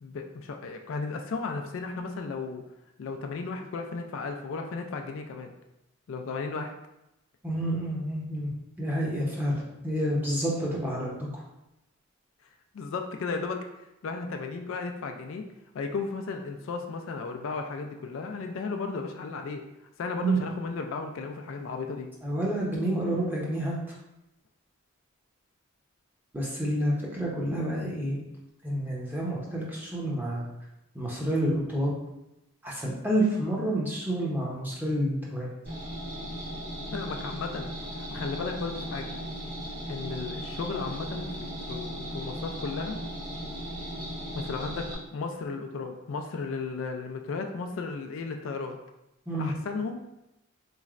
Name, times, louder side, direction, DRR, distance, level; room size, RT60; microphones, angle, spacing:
voice 1, 0.0-2.6 3.0-5.5 6.1-6.7 12.7-13.6 14.0-15.4 15.7-19.6 20.0-22.1 36.9-37.7 38.0-39.1 39.9-43.0 44.3-48.8 49.4-50.0, left 4 dB, 60° left, 4 dB, 0.3 m, -34 dB
voice 2, 7.4-8.5 8.8-9.6 9.8-11.4 20.2-20.4 22.2-23.7 26.3-28.2 28.6-30.5 30.9-31.9 32.6-35.5 49.3-49.5, right 1 dB, 10° right, -5 dB, 0.7 m, -29 dB
sound 1, 35.7-44.9, equal, 50° right, 1.1 m, -37 dB
4.1 x 3.0 x 2.4 m, 0.89 s
head